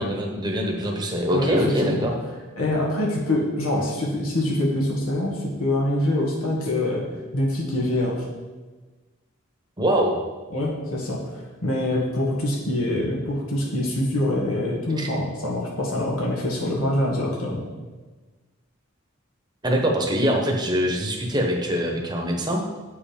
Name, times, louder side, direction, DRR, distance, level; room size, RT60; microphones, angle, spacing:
voice 1, 0.0-2.1 9.8-10.2 15.0-15.1 19.6-22.6, equal, 20° right, 1 dB, 1.1 m, -23 dB
voice 2, 1.3-2.0 2.6-7.0 7.3-8.2 10.5-11.2 11.6-17.6, left 1 dB, 85° left, -3 dB, 1.7 m, -24 dB
8.0 x 5.6 x 5.1 m, 1.3 s
head